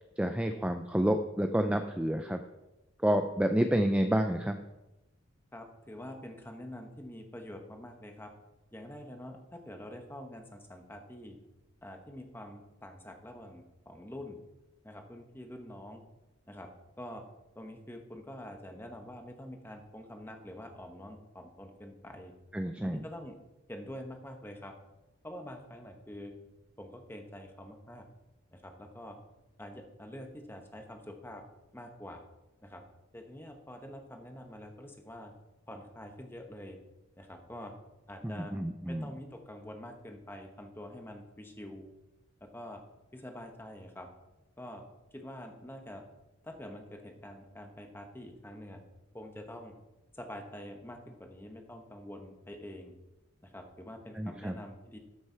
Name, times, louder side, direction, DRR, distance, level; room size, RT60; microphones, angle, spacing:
voice 1, 0.2-2.4 3.0-4.6 22.5-23.0 38.4-39.1 54.2-54.6, equal, 5° right, 6 dB, 0.4 m, -29 dB
voice 2, 5.5-8.3 8.7-11.4 11.8-14.4 14.8-16.0 16.5-16.7 17.0-17.2 17.5-22.3 22.8-23.4 23.7-24.7 25.2-26.3 26.8-28.1 28.5-29.2 29.6-31.4 31.7-32.2 32.6-32.8 33.1-35.3 35.7-36.8 37.2-37.7 38.1-38.6 38.9-41.8 42.4-42.8 43.1-44.1 44.6-44.8 45.1-46.0 46.4-48.8 49.1-49.8 50.1-52.9 53.4-55.0, left 1 dB, 10° left, 4 dB, 1.1 m, -46 dB
13.0 x 6.6 x 4.6 m, 1.0 s
head